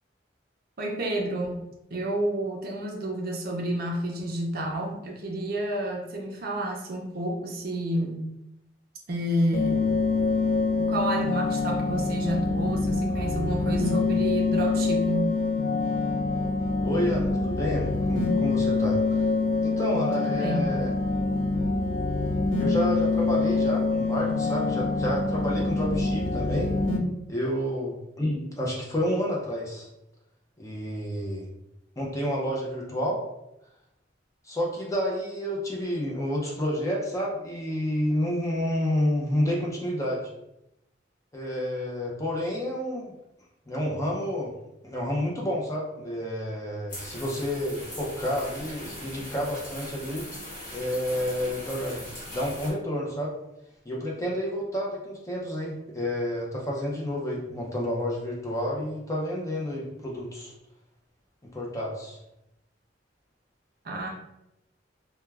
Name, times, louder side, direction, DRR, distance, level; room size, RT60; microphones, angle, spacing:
voice 1, 0.8-1.6 1.9-8.2 9.1-9.9 10.8-15.3 20.2-20.7 63.8-64.1, right 1 dB, 55° right, -1 dB, 0.5 m, -30 dB
sound 1, 9.5-27.0, left 3 dB, 90° left, 0.4 m, -25 dB
voice 2, 16.8-19.2 19.6-20.9 22.6-26.7 27.3-29.9 30.6-31.5 32.0-33.2 34.5-40.3 41.3-43.1 43.7-44.5 44.8-50.3 50.7-52.0 52.3-53.3 53.9-60.5 61.5-62.2, equal, 15° left, -3 dB, 0.5 m, -30 dB
sound 2, 46.9-52.7, left 1 dB, 50° left, 1.1 m, -40 dB
2.3 x 2.2 x 3.2 m, 0.86 s
head